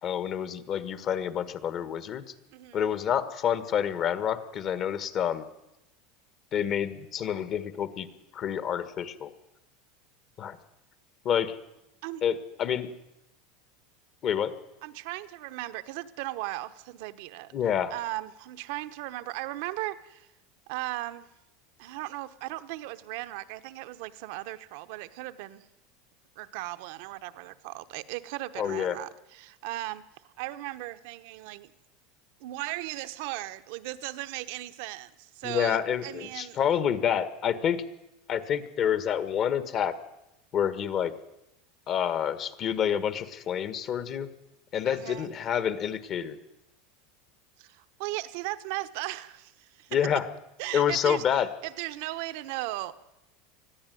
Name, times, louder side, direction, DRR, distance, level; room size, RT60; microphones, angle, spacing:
voice 1, 0.0-2.3 2.7-5.5 6.5-8.1 8.3-9.3 10.4-10.6 11.2-11.6 12.2-12.9 14.2-14.5 17.5-17.9 28.6-29.0 35.4-37.8 38.3-39.9 40.5-41.1 41.9-44.3 44.7-46.4 49.9-50.3 50.7-51.5, left 9 dB, 40° left, 13 dB, 1.6 m, -28 dB
voice 2, 2.5-2.8 12.0-12.2 14.8-17.5 17.9-20.3 20.7-21.3 21.8-25.7 26.4-31.7 32.4-36.6 44.9-45.3 47.6-50.0 50.6-51.2 51.6-52.9, right 17 dB, 65° right, 12 dB, 1.1 m, -37 dB
20.5 x 14.5 x 9.3 m, 0.89 s
supercardioid pair, 125°, 0 cm